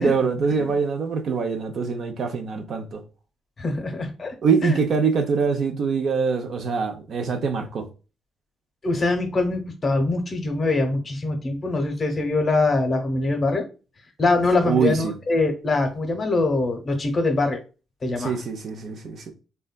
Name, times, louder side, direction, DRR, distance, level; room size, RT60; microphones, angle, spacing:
voice 1, 0.0-3.0 4.4-7.8 14.6-15.1 18.2-19.3, right 5 dB, 60° right, 0.5 m, -24 dB
voice 2, 3.6-4.3 4.6-4.8 8.8-13.7 14.2-17.6 18.0-18.3, left 2 dB, 40° left, 0.8 m, -23 dB
3.4 x 2.2 x 2.2 m
cardioid pair, 90°, 0 cm